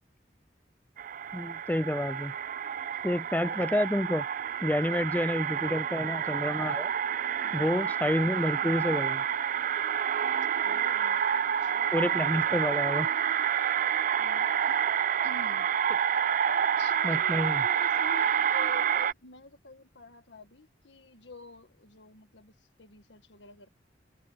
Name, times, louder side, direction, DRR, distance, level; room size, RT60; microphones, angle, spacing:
sound 1, 1.0-19.1, right 8 dB, 45° right, 0.4 m, -28 dB
voice 1, 1.3-2.3 3.0-4.2 4.6-6.9 7.5-9.2 11.9-13.1 17.0-17.6, left 1 dB, 10° left, 0.5 m, -29 dB
voice 2, 7.4-7.9 10.6-11.2 11.6-11.9 14.2-14.8 15.2-15.8 16.5-23.7, left 2 dB, 80° left, 1.7 m, -48 dB
head